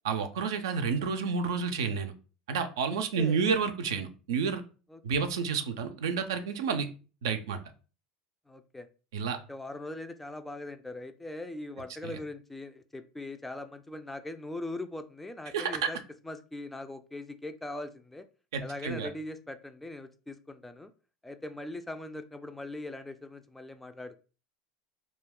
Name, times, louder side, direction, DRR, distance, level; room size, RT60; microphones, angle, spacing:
voice 1, 0.0-2.1 2.5-4.6 5.0-6.9 7.2-7.6 9.1-9.4 12.0-12.2 15.5-15.9 18.5-19.1, right 5 dB, 80° right, 7 dB, 0.4 m, -30 dB
voice 2, 2.9-3.4 4.9-5.0 8.5-8.9 9.5-16.0 16.2-18.3 18.6-20.9 21.2-24.2, left 2 dB, 10° left, 9 dB, 0.3 m, -41 dB
2.3 x 2.2 x 3.5 m, 0.35 s
hypercardioid pair, 95°, 2 cm